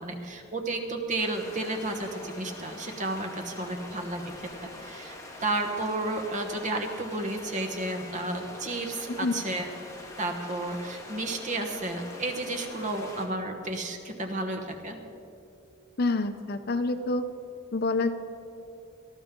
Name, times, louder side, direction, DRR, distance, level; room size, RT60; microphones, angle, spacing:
voice 1, 0.0-4.5 4.8-9.7 10.2-15.0, right 2 dB, 35° right, 4 dB, 1.2 m, -32 dB
sound 1, 1.2-13.3, left 2 dB, 15° left, 1.4 m, -44 dB
voice 2, 16.0-17.2 17.7-18.1, left 3 dB, 50° left, 9 dB, 0.6 m, -27 dB
18.5 x 13.0 x 3.8 m, 2.7 s
head